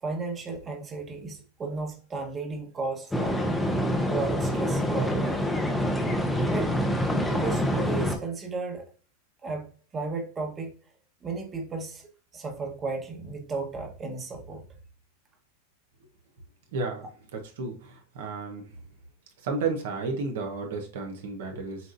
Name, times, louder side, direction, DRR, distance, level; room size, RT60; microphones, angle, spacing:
voice 1, 0.0-3.6 4.0-5.5 6.5-6.8 7.2-8.8 9.4-10.7 11.2-14.7, right 3 dB, 25° right, 1.3 m, -34 dB
sound 1, 3.1-8.2, equal, 5° left, 0.9 m, -26 dB
voice 2, 16.7-17.0 17.3-17.7 18.1-18.6 19.4-21.8, right 4 dB, 70° right, 1.3 m, -32 dB
7.3 x 2.6 x 2.6 m
hypercardioid pair, 110°, 0 cm